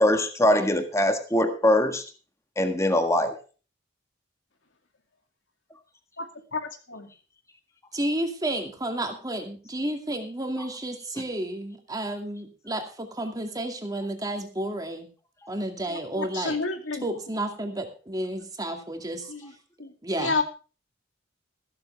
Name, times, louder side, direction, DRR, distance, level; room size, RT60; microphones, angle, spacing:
voice 1, 0.0-2.0 2.6-3.4, left 1 dB, 15° left, 6 dB, 1.6 m, -22 dB
voice 2, 6.5-7.1 15.9-17.2 19.3-19.5 19.8-19.9 20.2-20.4, left 3 dB, 85° left, 5 dB, 2.4 m, -30 dB
voice 3, 7.9-15.1 15.5-16.5 17.0-19.3 20.0-20.4, right 1 dB, 20° right, 4 dB, 2.3 m, -31 dB
15.0 x 13.0 x 3.4 m, 0.36 s
head